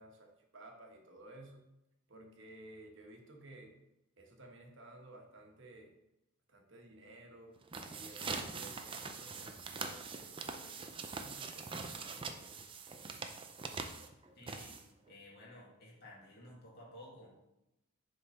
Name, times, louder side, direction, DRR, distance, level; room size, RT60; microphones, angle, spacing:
voice 1, 0.0-1.6 2.1-3.7 4.2-5.9 6.5-7.5 7.8-12.7, right 2 dB, 60° right, 2 dB, 1.2 m, -55 dB
sound 1, 7.6-15.1, right 4 dB, 25° right, 0.5 m, -43 dB
voice 2, 14.3-14.8 15.1-17.3, left 1 dB, 45° left, -4 dB, 2.1 m, -54 dB
6.9 x 3.8 x 5.4 m, 0.89 s
head